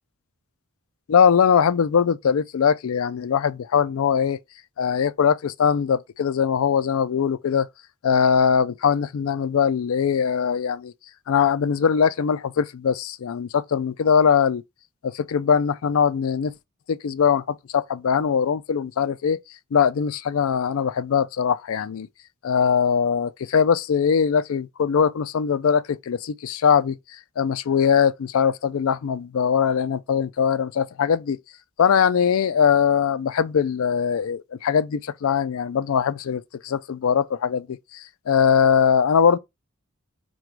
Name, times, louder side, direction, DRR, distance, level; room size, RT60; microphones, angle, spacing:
voice 1, 1.1-4.4 4.8-7.7 8.0-10.9 11.3-14.6 15.0-16.5 16.9-19.4 19.7-22.1 22.4-31.4 31.8-39.4, left 7 dB, 70° left, 0.4 m, -21 dB
4.9 x 2.3 x 4.5 m
head